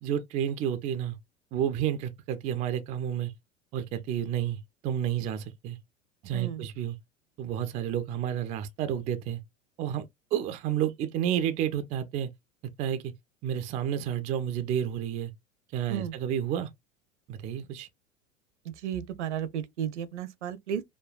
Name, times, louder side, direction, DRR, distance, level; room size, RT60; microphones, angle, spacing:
voice 1, 0.0-1.2 1.5-3.3 3.7-5.8 6.2-7.0 7.4-9.4 9.8-12.3 12.8-13.1 13.4-15.3 15.7-16.7 17.3-17.9, right 10 dB, 20° right, 0.3 m, -30 dB
voice 2, 6.3-6.6 15.9-16.1 18.7-20.8, right 9 dB, 65° right, 0.6 m, -33 dB
5.0 x 2.1 x 2.3 m
figure-of-eight pair, 80°, 38 cm